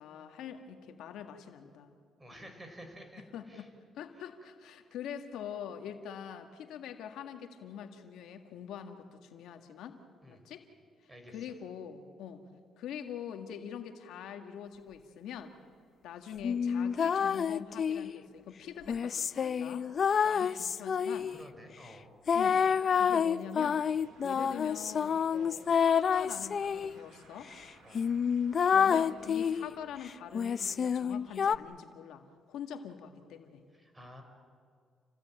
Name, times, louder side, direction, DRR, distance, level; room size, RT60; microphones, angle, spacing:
voice 1, 0.0-1.9 2.3-2.5 3.3-3.7 4.0-10.0 10.3-10.6 11.3-12.4 12.8-15.5 16.0-19.9 20.2-21.3 22.3-22.6 23.0-23.9 24.2-27.5 28.7-33.6, left 8 dB, 85° left, 6 dB, 1.8 m, -44 dB
voice 2, 2.2-3.7 4.2-4.5 10.2-10.4 11.1-11.5 20.2-20.3 21.3-22.1 27.8-28.0 33.7-34.2, equal, 15° right, 5 dB, 5.6 m, -51 dB
sound 1, 16.4-18.2 18.9-21.4 22.3-26.9 27.5-27.6 27.9-29.7 30.3-31.6, left 7 dB, 50° left, 0.6 m, -28 dB
sound 2, 23.6-30.0, right 3 dB, 80° right, 5.6 m, -59 dB
28.5 x 17.0 x 9.0 m, 2.1 s
cardioid pair, 90°, 0 cm